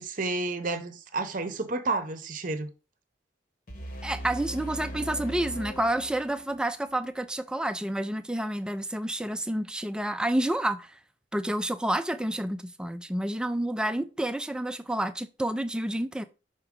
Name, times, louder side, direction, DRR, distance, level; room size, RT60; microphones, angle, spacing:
voice 1, 0.0-2.7, right 3 dB, 45° right, 0.7 m, -31 dB
sound 1, 3.7-6.7, right 1 dB, 45° left, 1.1 m, -39 dB
voice 2, 4.0-11.0 11.3-16.2, right 1 dB, 5° right, 0.3 m, -29 dB
5.9 x 4.4 x 3.6 m
head